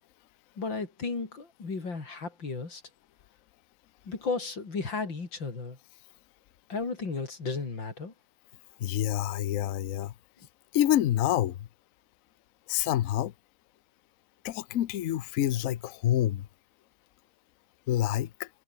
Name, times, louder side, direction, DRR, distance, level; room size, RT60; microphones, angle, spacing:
voice 1, 0.6-2.8 4.0-5.8 6.7-8.1, left 4 dB, 80° left, 4.6 m, -34 dB
voice 2, 8.8-10.1 10.7-11.6 12.7-13.3 14.4-16.5 17.9-18.5, left 12 dB, 65° left, 0.9 m, -27 dB
omnidirectional pair, 2.0 m